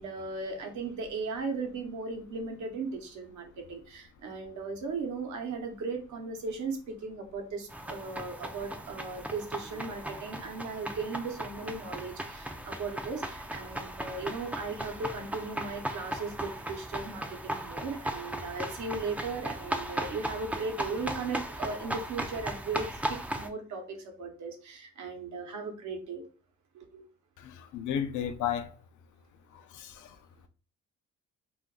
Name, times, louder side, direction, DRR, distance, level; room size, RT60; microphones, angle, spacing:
voice 1, 0.0-26.2 26.7-27.1, right 4 dB, 75° right, 0.9 m, -37 dB
sound 1, 7.7-23.5, right 1 dB, 5° right, 0.3 m, -37 dB
voice 2, 27.4-28.7 29.5-30.2, left 9 dB, 75° left, 0.5 m, -34 dB
2.5 x 2.3 x 3.6 m
cardioid pair, 90°, 30 cm